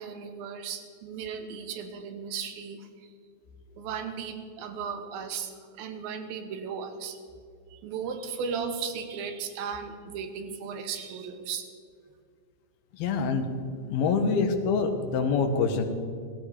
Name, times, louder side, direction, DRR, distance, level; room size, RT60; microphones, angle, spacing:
voice 1, 0.0-3.1 3.8-7.2 7.7-11.7, right 6 dB, 80° right, 8 dB, 2.9 m, -36 dB
voice 2, 13.0-13.5 13.9-15.9, left 5 dB, 85° left, 7 dB, 3.2 m, -25 dB
16.0 x 15.5 x 5.0 m, 2.2 s
omnidirectional pair, 4.2 m